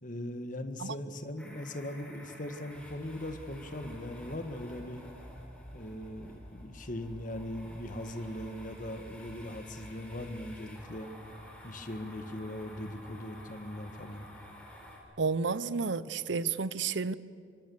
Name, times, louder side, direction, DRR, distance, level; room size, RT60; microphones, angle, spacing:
voice 1, 0.0-5.0 5.7-11.1 11.6-14.3, left 1 dB, 45° left, 1.6 m, -40 dB
sound 1, 1.4-15.0, equal, 5° left, 4.2 m, -50 dB
voice 2, 15.2-17.1, right 5 dB, 80° right, 0.7 m, -31 dB
24.5 x 24.5 x 7.1 m
head